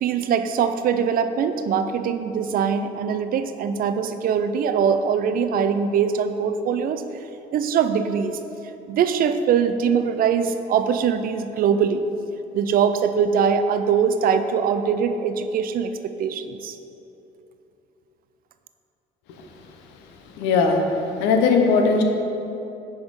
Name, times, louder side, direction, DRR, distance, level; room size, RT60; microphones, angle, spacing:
voice 1, 0.0-7.0 7.5-8.4 8.9-12.1 12.5-16.7, right 7 dB, 55° right, 9 dB, 0.4 m, -22 dB
voice 2, 20.4-22.0, left 4 dB, 90° left, 4 dB, 0.6 m, -19 dB
6.3 x 3.6 x 4.7 m, 2.9 s
cardioid pair, 90°, 18 cm